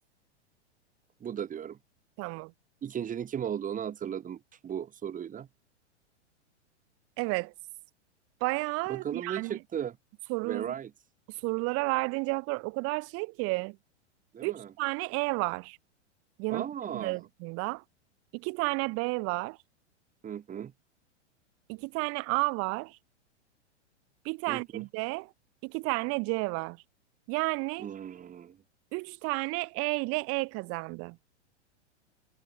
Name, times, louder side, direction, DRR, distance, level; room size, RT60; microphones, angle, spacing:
voice 1, 1.2-1.8 2.8-5.5 8.9-10.0 10.4-10.9 14.3-14.7 16.5-17.2 20.2-20.7 24.5-24.8 27.8-28.6, right 9 dB, 20° right, 6.3 m, -36 dB
voice 2, 2.2-2.5 7.2-7.5 8.4-9.6 10.3-10.7 11.4-13.8 14.4-15.8 16.4-17.8 18.3-19.6 21.7-23.0 24.2-25.3 25.6-26.8 27.3-27.9 28.9-31.2, right 27 dB, 40° right, 3.5 m, -31 dB
figure-of-eight pair, 105°, 35 cm